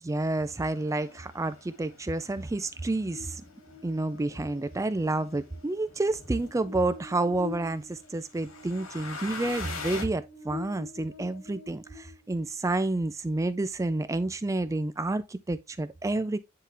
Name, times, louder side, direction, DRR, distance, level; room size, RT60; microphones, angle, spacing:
voice 1, 0.0-3.4 3.8-16.4, right 2 dB, 15° right, 0.3 m, -29 dB
sound 1, 0.6-6.7 7.3-10.0, left 4 dB, 70° left, 2.0 m, -44 dB
Buzz, 3.1-12.5, left 5 dB, 25° left, 5.2 m, -47 dB
10.0 x 3.7 x 3.3 m
head